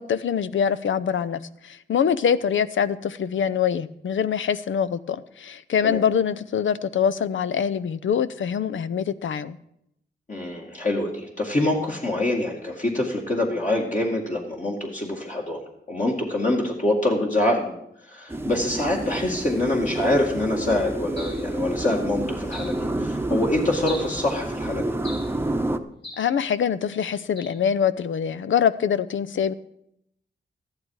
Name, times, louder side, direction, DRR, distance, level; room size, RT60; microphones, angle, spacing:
voice 1, 0.0-9.6 26.2-29.5, left 7 dB, 85° left, 15 dB, 0.6 m, -24 dB
voice 2, 10.3-17.7 18.0-24.9, left 1 dB, 40° left, -2 dB, 2.1 m, -25 dB
sound 1, 18.3-25.8, right 1 dB, 10° right, 0.8 m, -29 dB
sound 2, 21.2-21.5 22.5-22.8 23.8-24.2 25.0-25.4 26.0-26.3 27.4-27.6, left 1 dB, 65° left, 5.5 m, -39 dB
14.0 x 11.0 x 4.8 m, 0.75 s
wide cardioid pair, 90°, 19 cm